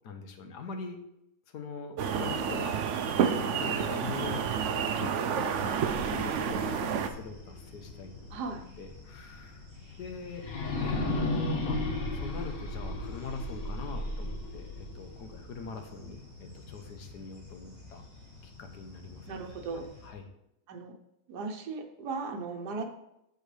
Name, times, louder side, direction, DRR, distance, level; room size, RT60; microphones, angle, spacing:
voice 1, 0.0-1.0 1.5-8.1 8.8-9.7 10.0-10.4 10.8-18.0 18.6-19.4 20.0-20.2, left 4 dB, 90° left, 6 dB, 1.6 m, -43 dB
sound 1, 2.0-7.1, right 7 dB, 65° right, 0.8 m, -29 dB
sound 2, 5.3-20.1, left 3 dB, 15° right, 2.3 m, -50 dB
sound 3, 5.5-8.4 8.9-9.0 10.3-15.4, left 2 dB, 60° left, 1.7 m, -35 dB
voice 2, 8.3-8.6 19.3-19.9 20.7-20.9 21.3-22.8, right 4 dB, 80° right, 3 dB, 1.5 m, -37 dB
12.5 x 4.5 x 3.3 m, 0.82 s
omnidirectional pair, 1.7 m